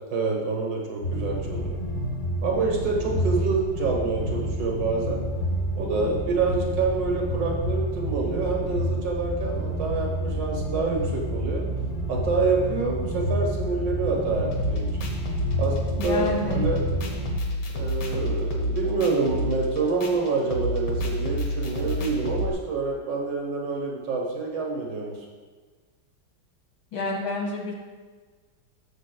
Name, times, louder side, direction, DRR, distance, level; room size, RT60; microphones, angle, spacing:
voice 1, 0.1-1.8 2.4-5.2 5.8-11.7 12.1-14.9 15.6-16.8 17.7-25.2, right 4 dB, 80° right, -1 dB, 1.9 m, -27 dB
sound 1, 1.0-17.3, equal, 45° left, 1.2 m, -29 dB
sound 2, 14.5-22.5, left 1 dB, 70° left, 1.7 m, -29 dB
voice 2, 16.0-16.6 26.9-27.7, left 2 dB, 85° left, -2 dB, 2.5 m, -29 dB
12.5 x 7.6 x 2.2 m, 1.4 s
omnidirectional pair, 1.9 m